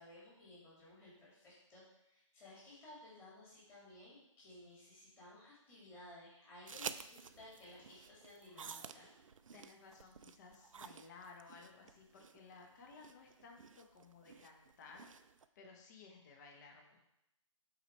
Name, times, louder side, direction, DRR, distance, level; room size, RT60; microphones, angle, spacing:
voice 1, 0.0-1.8 2.1-9.1, left 1 dB, 15° left, -8 dB, 2.6 m, -57 dB
sound 1, 6.7-15.5, right 6 dB, 75° right, 0.5 m, -51 dB
voice 2, 9.5-15.1 15.5-17.0, left 4 dB, 35° left, 1 dB, 1.0 m, -57 dB
7.9 x 4.3 x 4.4 m, 0.83 s
hypercardioid pair, 150°, 17 cm